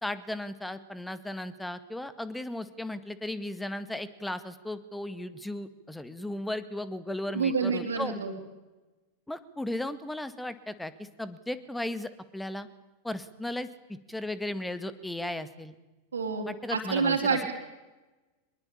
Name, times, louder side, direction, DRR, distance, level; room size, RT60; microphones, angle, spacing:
voice 1, 0.0-8.1 9.3-12.7 13.0-15.7 16.5-17.5, left 1 dB, 5° left, 13 dB, 1.9 m, -36 dB
voice 2, 7.3-8.3 16.1-16.4 16.7-17.5, right 5 dB, 70° right, -2 dB, 4.2 m, -27 dB
24.5 x 22.0 x 8.7 m, 1.1 s
figure-of-eight pair, 90°, 0 cm